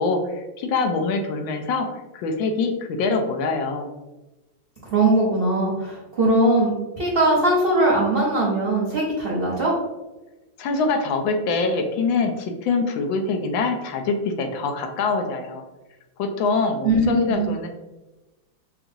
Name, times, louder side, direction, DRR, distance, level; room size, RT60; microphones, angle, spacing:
voice 1, 0.0-1.9 2.1-3.9 10.6-15.6 16.2-17.7, left 4 dB, 80° left, 4 dB, 1.3 m, -24 dB
voice 2, 4.9-9.7 16.8-17.5, right 2 dB, 45° right, -6 dB, 0.8 m, -20 dB
5.8 x 2.5 x 2.6 m, 1.1 s
omnidirectional pair, 2.1 m